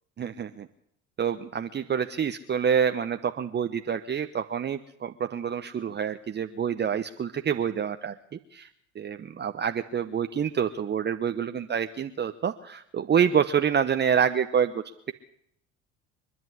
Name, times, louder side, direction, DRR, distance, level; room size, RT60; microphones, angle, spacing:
voice 1, 0.2-0.7 1.2-8.1 8.5-8.7 8.9-15.1, right 7 dB, 25° right, 8 dB, 0.9 m, -27 dB
25.0 x 10.5 x 9.8 m, 0.75 s
figure-of-eight pair, 65°, 40 cm